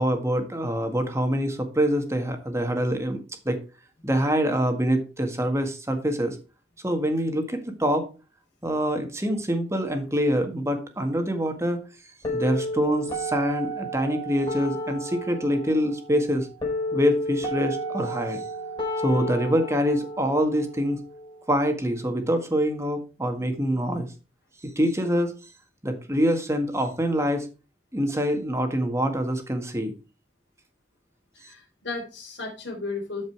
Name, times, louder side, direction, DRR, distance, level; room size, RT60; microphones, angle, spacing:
voice 1, 0.0-3.6 4.0-6.4 6.8-8.1 8.6-11.8 12.3-16.5 16.9-18.4 19.0-21.0 21.5-24.1 24.6-25.3 25.8-27.5 27.9-29.9, equal, 15° right, 6 dB, 1.8 m, -25 dB
sound 1, 12.2-22.2, equal, 25° left, 4.8 m, -32 dB
voice 2, 31.3-33.3, left 3 dB, 70° left, -5 dB, 3.8 m, -34 dB
13.0 x 5.4 x 4.7 m, 0.31 s
head